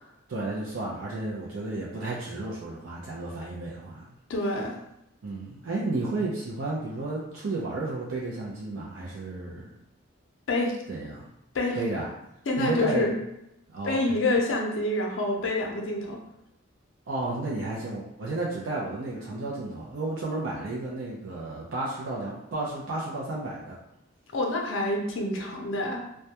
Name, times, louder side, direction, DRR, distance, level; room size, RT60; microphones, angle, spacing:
voice 1, 0.3-4.1 5.2-9.7 10.9-11.3 11.7-12.1 12.6-13.1 13.7-14.2 17.1-23.8, right 2 dB, 85° right, -5 dB, 0.5 m, -32 dB
voice 2, 4.3-4.7 10.5-10.7 11.5-11.8 12.5-13.1 13.8-16.2 24.3-26.0, left 2 dB, 75° left, 0 dB, 0.5 m, -27 dB
2.2 x 2.1 x 2.8 m, 0.84 s
head